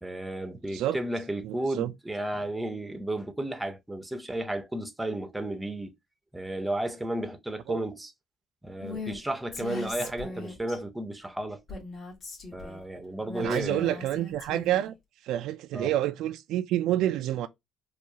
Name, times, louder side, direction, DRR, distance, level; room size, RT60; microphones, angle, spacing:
voice 1, 0.0-5.9 6.3-8.1 8.6-11.6 12.5-14.0 15.7-15.9, right 1 dB, 5° right, 0.6 m, -33 dB
voice 2, 1.4-1.9 7.7-7.8 10.0-10.1 13.4-14.9 15.2-17.5, right 13 dB, 75° right, 0.3 m, -28 dB
Female speech woman speaking, 8.8-9.2 9.5-10.8 11.7-12.8 13.3-14.9, left 2 dB, 50° left, 1.8 m, -39 dB
4.5 x 2.4 x 2.8 m
cardioid pair, 120°, 0 cm